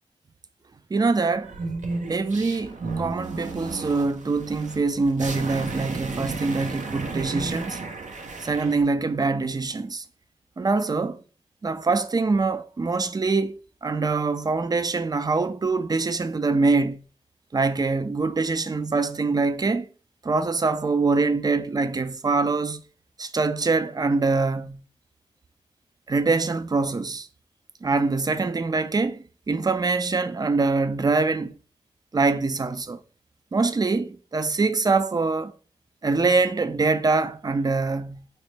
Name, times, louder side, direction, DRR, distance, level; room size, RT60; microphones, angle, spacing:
voice 1, 0.9-1.5 2.1-7.8 8.4-10.0 10.6-11.2 11.6-17.0 17.5-19.9 20.2-22.8 23.2-24.8 26.1-27.3 27.8-29.2 29.5-31.6 32.1-33.0 33.5-35.5 36.0-38.2, right 3 dB, 30° right, 0.4 m, -24 dB
sound 1, 1.4-8.8, right 3 dB, 70° right, 0.6 m, -33 dB
4.2 x 2.1 x 3.2 m
cardioid pair, 45°, 13 cm